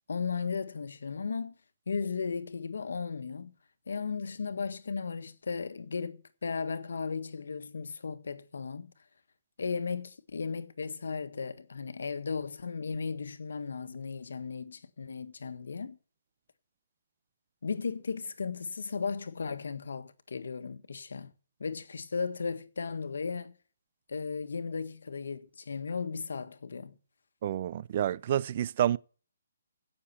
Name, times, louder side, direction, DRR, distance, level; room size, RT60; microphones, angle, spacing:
voice 1, 0.1-1.5 1.9-3.5 3.9-8.9 9.6-16.0 17.6-21.3 21.6-23.5 24.1-27.0, left 5 dB, 75° left, 1.5 m, -35 dB
voice 2, 27.4-29.0, right 11 dB, 40° right, 0.5 m, -29 dB
16.0 x 6.7 x 5.6 m
hypercardioid pair, 160°, 0 cm